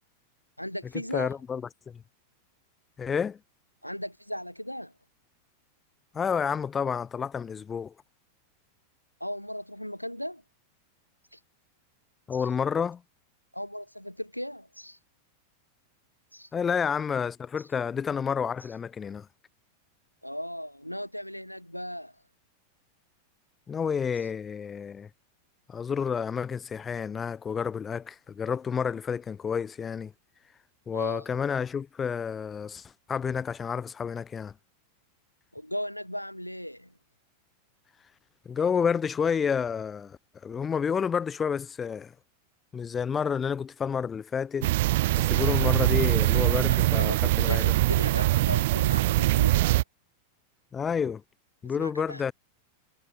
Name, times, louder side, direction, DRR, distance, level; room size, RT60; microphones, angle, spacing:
voice 1, 0.6-1.3 3.8-4.9 9.2-10.4 11.3-11.4 13.5-15.0 16.3-16.5 20.2-22.1 30.9-31.2 35.5-36.9 46.9-49.8 51.7-52.2, equal, 90° left, 1.9 m, -37 dB
voice 2, 1.1-2.0 3.0-3.4 6.1-7.9 12.3-13.0 16.5-19.3 23.7-25.1 25.7-30.1 30.9-34.5 38.5-42.1 42.7-44.7 45.2-47.6 50.7-51.2 51.6-52.3, left 6 dB, 20° left, 0.8 m, -30 dB
sound 1, 44.6-49.8, right 18 dB, 50° right, 0.3 m, -23 dB
figure-of-eight pair, 90°, 0 cm